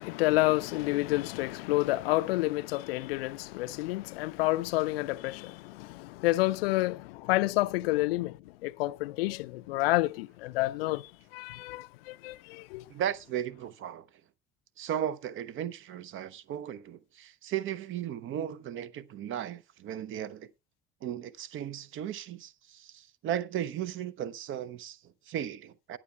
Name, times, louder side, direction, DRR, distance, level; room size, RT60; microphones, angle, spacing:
voice 1, 0.0-8.4 8.6-11.0 11.3-12.8, left 19 dB, 65° left, 0.4 m, -29 dB
voice 2, 12.9-14.1 14.8-20.5 21.0-26.0, right 10 dB, 40° right, 0.6 m, -36 dB
19.5 x 7.3 x 2.3 m
figure-of-eight pair, 55°, 32 cm